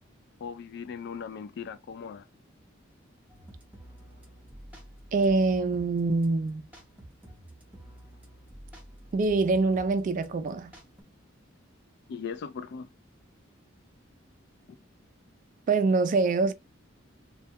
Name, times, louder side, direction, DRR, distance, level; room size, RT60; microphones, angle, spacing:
voice 1, 0.4-2.3 12.1-12.9, left 6 dB, 55° left, 0.3 m, -38 dB
sound 1, 3.3-11.0, right 1 dB, 10° right, 0.7 m, -50 dB
voice 2, 5.1-6.7 9.1-10.7 15.7-16.5, right 3 dB, 40° right, 0.3 m, -24 dB
2.2 x 2.1 x 2.7 m
head